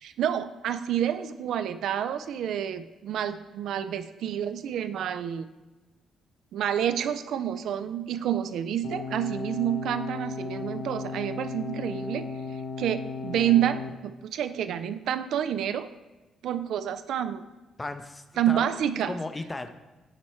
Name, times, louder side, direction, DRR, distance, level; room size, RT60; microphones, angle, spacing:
voice 1, 0.0-5.4 6.5-12.2 12.8-15.9 16.4-17.4 18.4-19.2, right 10 dB, 75° right, 11 dB, 0.3 m, -28 dB
sound 1, 8.8-13.9, left 4 dB, 65° left, 0.6 m, -35 dB
voice 2, 17.8-18.7 19.1-19.7, left 2 dB, 20° left, 9 dB, 0.5 m, -35 dB
9.0 x 3.1 x 4.3 m, 1.2 s
cardioid pair, 90°, 0 cm